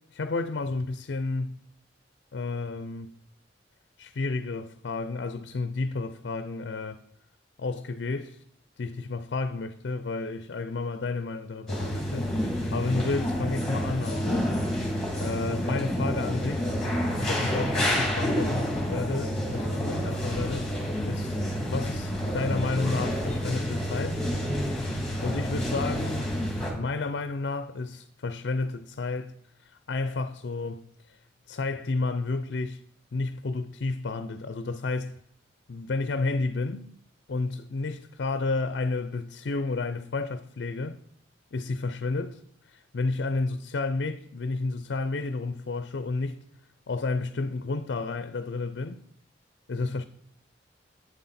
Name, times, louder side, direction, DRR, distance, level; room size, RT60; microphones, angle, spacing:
voice 1, 0.1-1.6 2.3-3.1 4.0-7.0 7.6-8.4 8.8-14.5 15.2-16.7 17.2-20.7 21.0-24.2 24.8-26.3 26.7-31.2 31.5-32.8 33.1-35.2 35.7-36.9 37.3-41.0 41.5-42.4 42.7-46.4 46.9-49.0 49.7-50.0, left 3 dB, 65° left, 0.5 m, -31 dB
sound 1, 11.7-26.7, equal, 5° left, 2.6 m, -29 dB
8.1 x 7.8 x 4.2 m
head